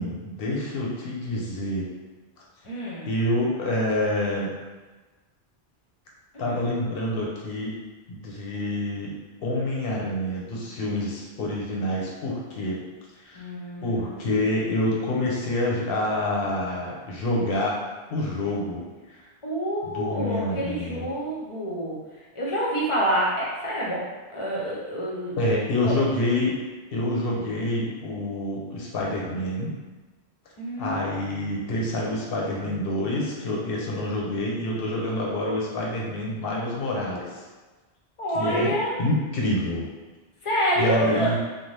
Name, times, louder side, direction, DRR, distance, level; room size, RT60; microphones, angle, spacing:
voice 1, 0.0-1.9 3.1-4.5 6.4-7.7 8.1-9.2 9.4-12.8 13.1-13.4 13.8-17.8 18.1-18.8 19.1-19.2 19.8-21.1 25.4-26.6 26.9-29.7 30.8-37.4 38.3-38.7 39.0-39.9 40.8-41.4, left 1 dB, 70° left, -3 dB, 0.8 m, -27 dB
voice 2, 2.6-3.1 6.3-6.6 13.3-14.3 19.4-22.0 22.4-24.0 24.3-25.4 25.8-26.1 30.6-31.6 38.2-39.0 40.4-41.3, equal, 35° left, -5 dB, 0.6 m, -27 dB
2.6 x 2.1 x 3.2 m, 1.3 s
omnidirectional pair, 1.1 m